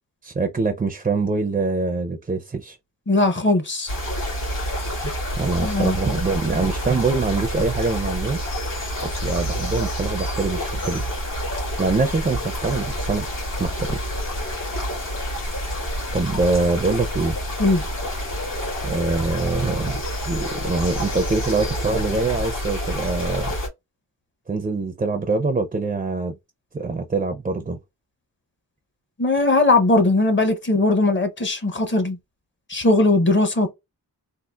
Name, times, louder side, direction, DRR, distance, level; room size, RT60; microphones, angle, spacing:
voice 1, 0.2-2.8 5.0-8.4 9.0-11.1 11.8-13.3 13.6-14.0 16.1-17.4 18.8-20.0 20.3-23.6 24.5-26.4 26.7-27.8, right 3 dB, 20° right, 0.4 m, -24 dB
voice 2, 3.1-3.9 5.6-6.0 17.6-17.9 29.2-32.2 32.7-33.7, left 2 dB, 30° left, 0.7 m, -19 dB
sound 1, 3.9-23.7, equal, 60° left, 1.9 m, -28 dB
3.7 x 2.3 x 2.3 m
wide cardioid pair, 175°, 36 cm